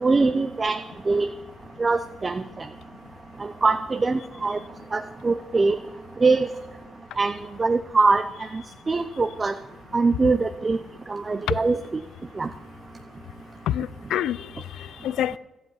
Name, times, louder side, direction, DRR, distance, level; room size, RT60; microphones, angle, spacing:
voice 1, 0.0-0.8 1.1-1.3 1.8-2.7 3.4-4.6 4.9-5.8 6.2-6.5 7.2-7.3 7.6-9.5 9.9-10.8 11.1-11.8 12.4-12.5, right 3 dB, 30° right, 0.6 m, -22 dB
voice 2, 13.7-15.4, left 11 dB, 80° left, 0.4 m, -27 dB
12.5 x 7.5 x 9.1 m
cardioid pair, 90°, 0 cm